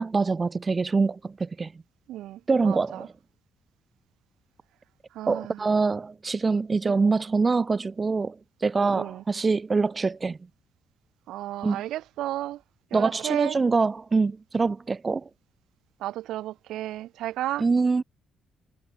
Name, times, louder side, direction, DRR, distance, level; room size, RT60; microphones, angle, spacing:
voice 1, 0.0-1.7 2.5-3.1 5.3-10.4 11.6-11.8 12.9-15.3 17.6-18.0, right 4 dB, 30° right, 0.7 m, -24 dB
voice 2, 2.1-2.4 2.6-3.1 5.2-5.6 6.9-7.0 8.8-9.2 11.3-12.6 12.9-13.6 16.0-17.6, right 14 dB, 85° right, 1.9 m, -33 dB
cardioid pair, 90°, 0 cm